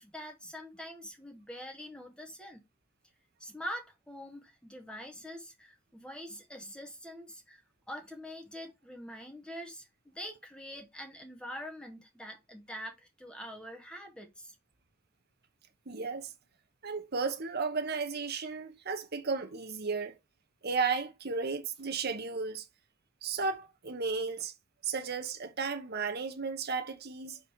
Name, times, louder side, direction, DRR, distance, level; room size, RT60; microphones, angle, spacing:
voice 1, 0.0-2.6 3.4-9.9 10.1-14.5, equal, 5° left, 1.2 m, -44 dB
voice 2, 15.9-16.3 16.8-20.1 20.6-22.6 23.2-24.5 24.8-27.4, right 4 dB, 50° right, 1.0 m, -34 dB
5.4 x 4.1 x 4.5 m
head